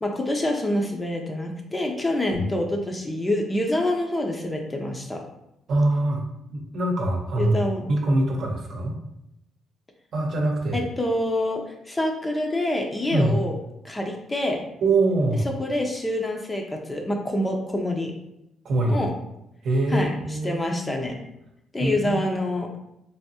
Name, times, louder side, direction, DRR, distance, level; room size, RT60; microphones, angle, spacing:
voice 1, 0.0-5.2 7.4-7.8 10.7-13.5 13.8-14.6 15.4-18.1 18.9-19.1 19.9-20.1 20.4-21.1 21.7-22.7, left 1 dB, 20° left, 2 dB, 0.6 m, -26 dB
voice 2, 5.7-6.2 6.5-7.6 7.9-9.0 10.1-10.8 13.1-13.4 14.8-15.5 18.6-19.0 19.6-20.6 21.8-22.2, right 2 dB, 60° right, 1 dB, 0.7 m, -23 dB
3.4 x 2.6 x 2.7 m, 0.83 s
cardioid pair, 90°, 0 cm